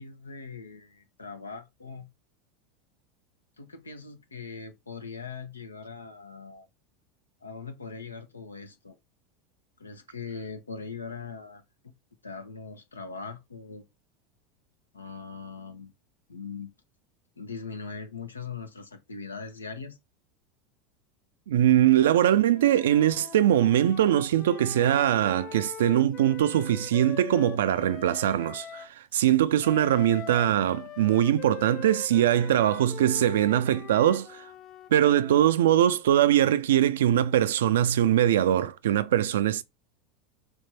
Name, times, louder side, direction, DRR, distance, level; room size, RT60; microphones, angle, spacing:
voice 1, 0.0-2.1 3.6-6.7 7.4-8.9 9.8-11.9 12.2-13.8 14.9-15.9 16.3-16.7 17.4-20.0, left 5 dB, 90° left, 0.7 m, -41 dB
voice 2, 21.5-34.5 34.9-39.6, right 11 dB, 70° right, 0.4 m, -22 dB
Wind instrument woodwind instrument, 22.5-28.9 29.6-35.6, left 9 dB, 40° left, 0.4 m, -43 dB
3.5 x 3.2 x 4.2 m
hypercardioid pair, 80°, 0 cm